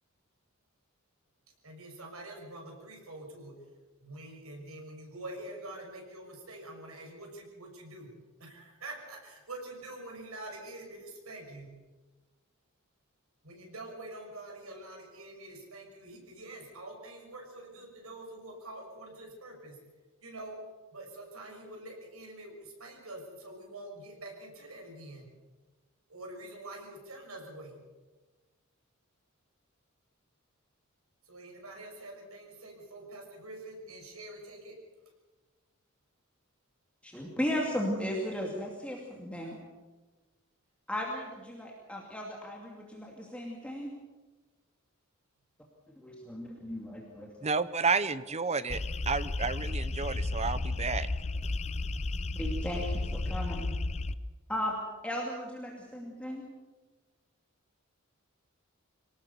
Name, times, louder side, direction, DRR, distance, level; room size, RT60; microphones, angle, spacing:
voice 1, 1.6-3.5 4.0-8.1 8.4-11.7 13.4-19.8 20.2-20.6 20.9-25.3 26.1-27.8 31.2-34.8, right 1 dB, 80° right, 1 dB, 6.3 m, -46 dB
voice 2, 37.0-39.6 40.9-44.0 46.0-47.5 52.4-53.7 54.5-54.7 55.0-56.5, equal, 5° left, -1 dB, 2.6 m, -36 dB
voice 3, 47.4-48.8 49.1-51.1, right 4 dB, 30° right, 15 dB, 0.8 m, -31 dB
sound 1, 48.7-54.1, left 2 dB, 30° left, 0.6 m, -33 dB
24.0 x 18.5 x 7.0 m, 1.2 s
head